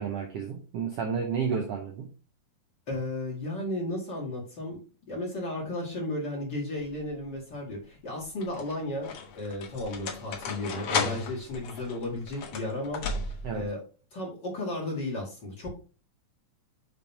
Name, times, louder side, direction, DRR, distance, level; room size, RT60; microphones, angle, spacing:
voice 1, 0.0-2.1 13.4-13.7, right 6 dB, 75° right, 1.4 m, -31 dB
voice 2, 2.9-4.8 5.1-13.0 13.5-13.8 14.1-15.8, left 1 dB, 35° left, 2.4 m, -34 dB
sound 1, 6.8-7.3 8.2-13.7, left 4 dB, 60° left, 2.1 m, -35 dB
7.3 x 3.5 x 4.6 m
omnidirectional pair, 3.7 m